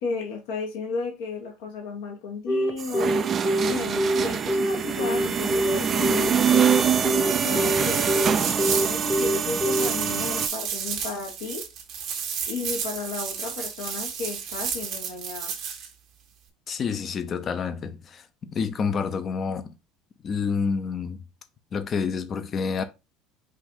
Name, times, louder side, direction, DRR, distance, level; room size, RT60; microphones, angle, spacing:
voice 1, 0.0-3.1 3.7-6.6 7.4-11.6 12.5-15.5, left 4 dB, 75° left, 1.2 m, -33 dB
Telephone, 2.5-9.9, equal, 20° left, 1.1 m, -24 dB
sound 1, 2.8-10.5, right 7 dB, 40° right, 0.5 m, -25 dB
sound 2, 7.8-15.9, right 7 dB, 60° right, 1.2 m, -32 dB
voice 2, 16.7-19.7 20.2-21.2 21.7-22.8, left 5 dB, 40° left, 0.7 m, -28 dB
5.2 x 2.6 x 3.7 m
hypercardioid pair, 75°, 0 cm